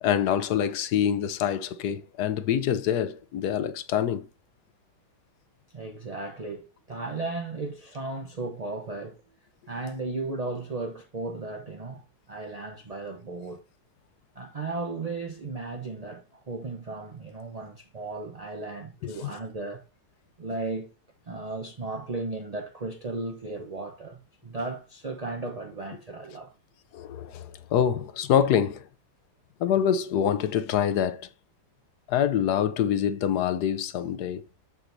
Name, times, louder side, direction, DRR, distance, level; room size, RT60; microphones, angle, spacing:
voice 1, 0.0-4.2 19.2-19.3 26.9-28.8 29.6-31.3 32.1-34.4, left 9 dB, 70° left, 1.2 m, -25 dB
voice 2, 5.7-9.2 9.7-13.6 14.4-19.8 20.4-20.9 21.3-26.5, right 3 dB, 45° right, 0.5 m, -35 dB
13.0 x 4.9 x 2.6 m
omnidirectional pair, 1.9 m